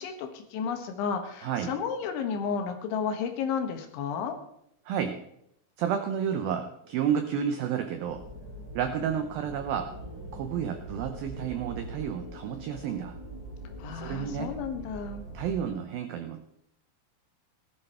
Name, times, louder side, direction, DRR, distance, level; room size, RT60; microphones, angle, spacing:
voice 1, 0.0-4.4 13.8-15.2, left 6 dB, 75° left, 6 dB, 3.7 m, -32 dB
voice 2, 1.4-1.8 4.9-5.2 5.8-8.2 8.7-9.9 10.3-13.1 13.9-14.5 15.3-16.4, right 8 dB, 90° right, 7 dB, 2.0 m, -31 dB
sound 1, 6.8-12.1, right 4 dB, 45° right, 3.8 m, -53 dB
sound 2, 8.1-15.6, equal, 35° left, 4.3 m, -43 dB
17.5 x 12.0 x 4.4 m, 0.75 s
omnidirectional pair, 5.5 m